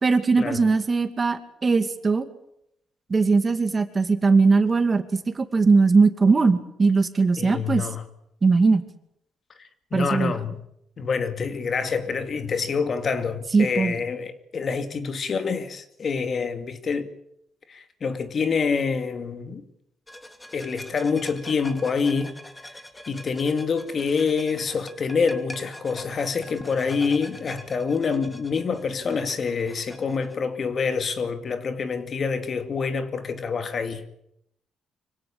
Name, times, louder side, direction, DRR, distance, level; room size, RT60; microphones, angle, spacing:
voice 1, 0.0-2.2 3.1-7.9 8.4-8.8 9.9-10.3 13.5-13.9, right 4 dB, 30° right, 2.4 m, -20 dB
voice 2, 7.4-8.0 9.6-10.6 11.0-17.1 17.7-19.6 20.5-22.4 23.1-34.0, left 5 dB, 45° left, 2.5 m, -26 dB
sound 1, 20.1-30.4, left 1 dB, 10° left, 3.0 m, -44 dB
25.5 x 17.5 x 8.7 m
cardioid pair, 90°, 0 cm